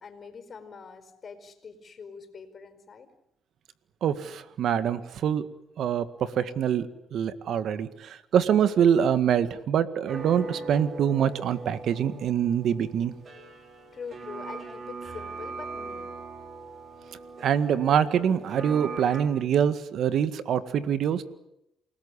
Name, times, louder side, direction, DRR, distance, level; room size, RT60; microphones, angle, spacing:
voice 1, 0.0-3.1 13.9-16.1, left 5 dB, 45° left, 9 dB, 4.8 m, -43 dB
voice 2, 4.0-5.5 5.8-13.1 17.4-21.2, right 8 dB, 70° right, 12 dB, 1.8 m, -25 dB
sound 1, 10.1-19.2, right 3 dB, 50° right, 5.4 m, -40 dB
28.5 x 19.5 x 10.0 m, 0.83 s
cardioid pair, 90°, 0 cm